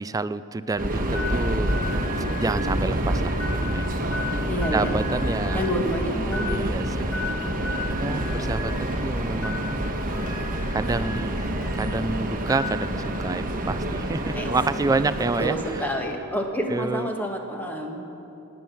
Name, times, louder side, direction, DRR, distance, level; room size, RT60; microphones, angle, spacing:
voice 1, 0.0-1.8 2.4-4.0 4.3-4.4 4.7-5.7 6.5-7.1 8.0-9.9 10.7-11.4 11.7-15.8 16.7-17.1, right 3 dB, 15° right, 14 dB, 0.3 m, -28 dB
Subway metro underground, 0.8-16.1, right 1 dB, 40° right, 1.3 m, -27 dB
sound 1, 1.1-12.0 12.4-13.2, left 3 dB, 75° left, 4.1 m, -37 dB
voice 2, 4.5-4.9 5.5-6.7 14.3-14.5 15.4-18.1, equal, 10° left, 2 dB, 1.4 m, -28 dB
18.5 x 9.2 x 7.1 m, 2.9 s
head